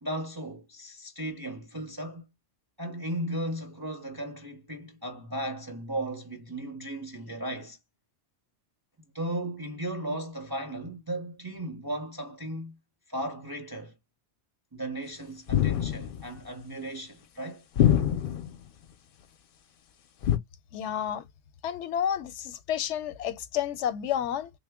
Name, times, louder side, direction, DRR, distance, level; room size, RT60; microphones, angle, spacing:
voice 1, 0.0-2.2 2.8-7.8 9.1-12.8 13.1-13.9 14.7-17.6, right 1 dB, 25° right, 0.6 m, -36 dB
sound 1, 15.5-16.3 17.8-18.6 20.2-20.4, left 10 dB, 60° left, 0.6 m, -24 dB
voice 2, 20.7-21.3 21.6-24.5, left 9 dB, 90° left, 0.9 m, -30 dB
3.2 x 2.1 x 3.4 m
omnidirectional pair, 1.2 m